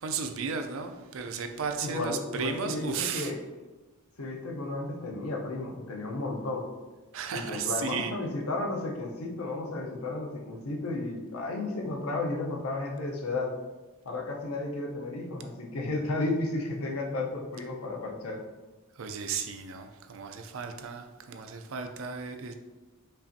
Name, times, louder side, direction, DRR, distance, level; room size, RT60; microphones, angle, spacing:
voice 1, 0.0-3.3 7.1-8.1 19.0-22.5, right 5 dB, 65° right, 6 dB, 0.4 m, -34 dB
voice 2, 1.8-3.4 4.2-6.6 7.3-13.5 14.0-18.4, left 2 dB, 85° left, 0 dB, 0.7 m, -33 dB
5.4 x 2.5 x 2.6 m, 1.2 s
head